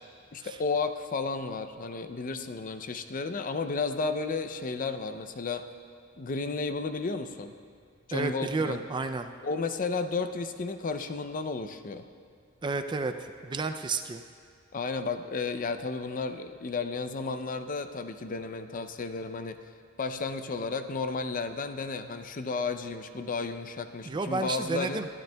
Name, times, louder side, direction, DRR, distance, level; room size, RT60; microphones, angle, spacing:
voice 1, 0.3-5.6 6.2-7.5 8.1-8.8 9.4-12.1 14.7-19.6 20.0-25.1, left 4 dB, 40° left, 9 dB, 0.5 m, -33 dB
voice 2, 8.1-9.3 12.6-14.2 24.0-25.1, right 3 dB, 20° right, 8 dB, 0.4 m, -31 dB
22.0 x 12.0 x 2.3 m, 2.2 s
head